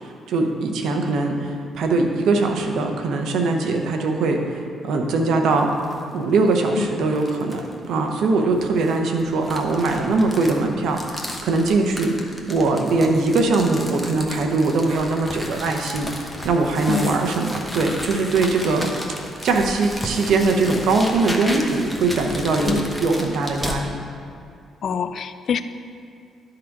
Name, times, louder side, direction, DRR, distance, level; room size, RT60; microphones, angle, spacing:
voice 1, 0.3-5.7 6.1-12.2 12.5-18.9 19.4-24.0, right 3 dB, 75° right, 3 dB, 0.8 m, -21 dB
sound 1, 5.5-6.0 6.5-6.6 7.1-7.7 8.6-23.8, left 1 dB, ahead, 1.0 m, -34 dB
voice 2, 24.8-25.6, left 8 dB, 60° left, 11 dB, 0.3 m, -25 dB
11.5 x 3.9 x 4.6 m, 2.4 s
cardioid pair, 90°, 0 cm